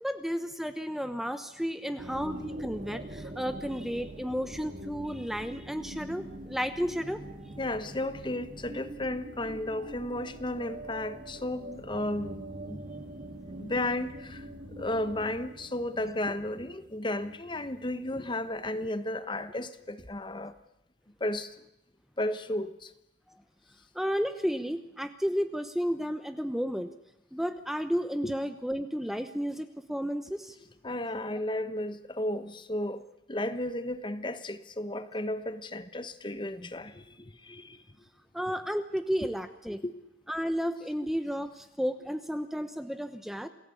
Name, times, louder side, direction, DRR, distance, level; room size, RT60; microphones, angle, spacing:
voice 1, 0.0-7.2 11.9-12.0 23.9-26.9 27.3-30.5 38.3-39.8 40.3-43.5, equal, ahead, 1.0 m, -32 dB
sound 1, 2.0-18.4, right 1 dB, 45° right, 2.8 m, -44 dB
voice 2, 7.6-12.8 13.6-14.5 14.8-20.5 21.2-21.6 22.2-22.9 28.2-28.3 30.8-33.0 33.3-37.8 39.2-39.3 39.8-39.9, left 1 dB, 25° left, 1.2 m, -34 dB
28.5 x 18.0 x 8.5 m
head